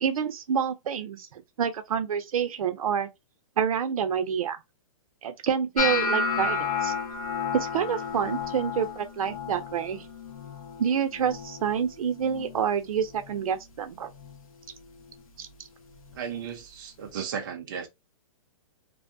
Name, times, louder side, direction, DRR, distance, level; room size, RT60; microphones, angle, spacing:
voice 1, 0.0-3.1 3.6-4.6 5.2-6.9 7.5-10.0 10.8-14.1 15.4-15.5, right 7 dB, 85° right, 0.6 m, -28 dB
sound 1, 5.8-11.9 12.1-12.6 13.0-13.5 14.2-14.4 16.1-16.2, left 5 dB, 85° left, 0.7 m, -32 dB
voice 2, 16.1-17.9, right 7 dB, 35° right, 0.5 m, -35 dB
2.6 x 2.0 x 2.5 m
hypercardioid pair, 175°, 18 cm